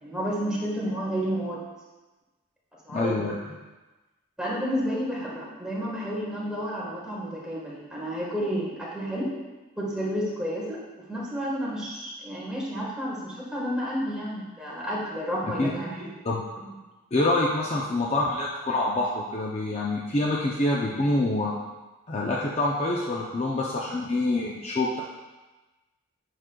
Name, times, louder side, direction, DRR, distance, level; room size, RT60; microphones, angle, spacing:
voice 1, 0.0-1.6 2.8-3.5 4.4-9.3 9.8-16.1 16.6-16.8, equal, 5° right, -6 dB, 1.3 m, -31 dB
voice 2, 2.9-3.4 15.4-15.7 16.2-16.4 17.1-21.5 22.1-25.0, left 2 dB, 30° left, -3 dB, 0.5 m, -26 dB
7.5 x 6.0 x 2.2 m, 1.2 s
head